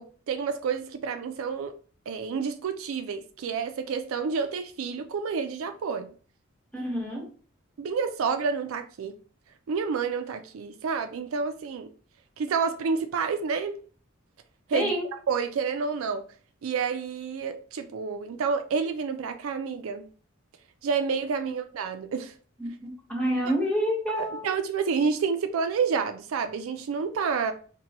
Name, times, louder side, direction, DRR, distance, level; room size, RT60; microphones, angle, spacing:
voice 1, 0.0-1.7 2.1-6.1 7.8-9.1 9.7-11.9 12.4-13.8 14.7-14.9 15.3-16.3 16.6-20.1 20.8-22.3 23.5-23.6 24.2-27.5, right 5 dB, 75° right, 0.4 m, -29 dB
voice 2, 6.7-7.3 14.7-15.0 21.4-21.5 22.6-24.5, equal, 5° left, 1.2 m, -28 dB
4.2 x 2.2 x 2.9 m
head